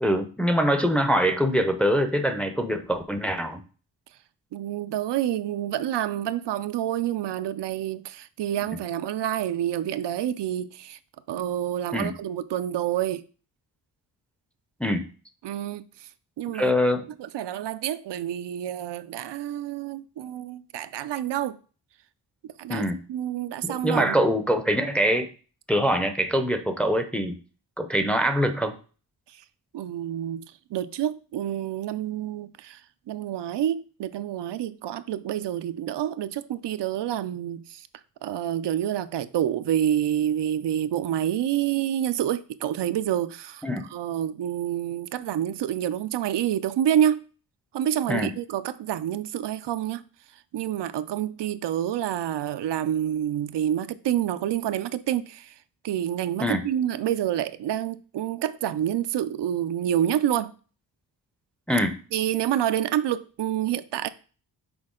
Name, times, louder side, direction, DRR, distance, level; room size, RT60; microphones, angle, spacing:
voice 1, 0.0-3.6 11.9-12.1 14.8-15.1 16.5-17.1 22.7-23.0 23.6-25.3 25.7-27.3 27.8-28.7 43.6-43.8 48.1-48.3 56.4-56.6 61.7-62.0, equal, 5° left, 0.5 m, -24 dB
voice 2, 4.5-11.0 11.3-13.2 15.4-16.1 16.4-16.7 17.2-21.6 22.6-22.8 23.1-24.2 29.7-30.4 30.7-32.8 33.1-37.9 38.2-43.6 43.9-47.2 47.7-50.0 50.5-55.5 55.8-60.5 62.1-64.1, right 11 dB, 85° right, 0.5 m, -28 dB
6.1 x 4.4 x 3.7 m
wide cardioid pair, 160°, 41 cm